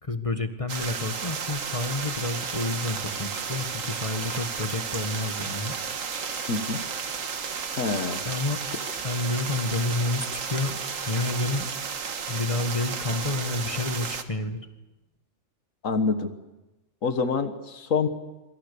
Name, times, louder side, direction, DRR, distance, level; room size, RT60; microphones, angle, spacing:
voice 1, 0.0-5.7 8.2-8.6 9.0-10.8 11.1-11.7 12.3-14.6, left 2 dB, 25° left, 8 dB, 1.5 m, -29 dB
sound 1, 0.7-14.2, right 6 dB, 85° right, 1.8 m, -33 dB
voice 2, 6.5-6.8 7.8-8.2 15.8-16.3 17.0-18.1, left 4 dB, 80° left, 9 dB, 1.7 m, -26 dB
27.0 x 25.5 x 6.9 m, 1.1 s
omnidirectional pair, 1.3 m